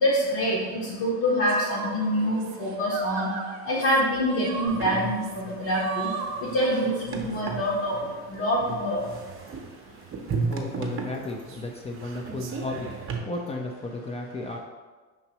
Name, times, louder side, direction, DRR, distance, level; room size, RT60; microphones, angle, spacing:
voice 1, 0.0-3.3 3.7-6.1 6.5-7.9 8.3-9.1, equal, 60° left, -5 dB, 1.2 m, -25 dB
sound 1, 1.5-7.4, right 6 dB, 70° right, 0.6 m, -37 dB
sound 2, 4.7-13.2, right 4 dB, 30° right, 0.7 m, -35 dB
voice 2, 10.5-12.9 13.2-14.6, left 2 dB, 15° left, 1 dB, 0.4 m, -34 dB
5.8 x 2.9 x 2.9 m, 1.3 s
hypercardioid pair, 80°, 42 cm